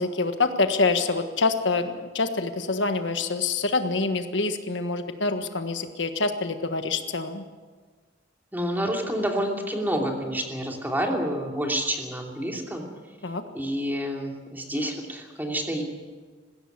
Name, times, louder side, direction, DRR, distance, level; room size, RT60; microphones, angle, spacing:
voice 1, 0.0-7.4 13.2-13.4, left 3 dB, 80° left, 8 dB, 1.5 m, -26 dB
voice 2, 8.5-12.8 13.5-15.8, equal, 10° right, 1 dB, 2.8 m, -28 dB
20.5 x 16.0 x 8.2 m, 1.4 s
head